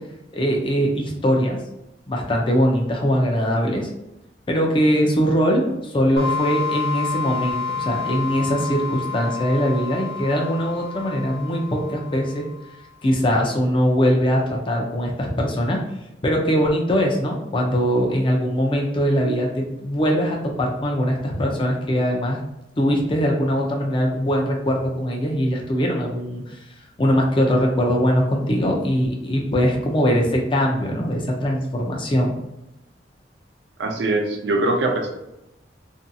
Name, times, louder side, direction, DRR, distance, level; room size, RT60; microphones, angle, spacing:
voice 1, 0.3-1.6 2.1-3.9 4.5-12.5 13.0-15.8 16.2-22.4 22.8-26.4 27.0-32.4, equal, 30° left, 0 dB, 0.5 m, -21 dB
sound 1, 6.2-12.7, left 5 dB, 60° left, 0.8 m, -29 dB
voice 2, 33.8-35.1, right 2 dB, 70° right, 4 dB, 0.5 m, -22 dB
2.6 x 2.6 x 2.3 m, 0.89 s
head